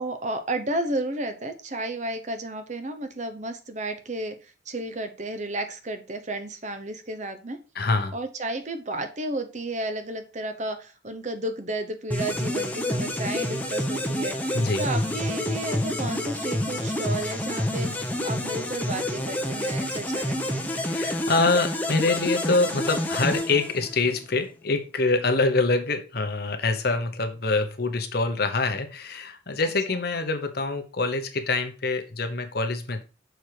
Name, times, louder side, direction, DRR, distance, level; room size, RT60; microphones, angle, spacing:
voice 1, 0.0-7.6 8.1-20.7 29.6-29.7, right 2 dB, 35° right, 8 dB, 0.9 m, -32 dB
voice 2, 7.7-8.2 14.5-14.8 20.9-33.0, left 3 dB, 50° left, 7 dB, 1.0 m, -25 dB
sound 1, 12.1-24.2, left 1 dB, 10° left, 0.8 m, -28 dB
6.6 x 4.6 x 4.7 m, 0.33 s
head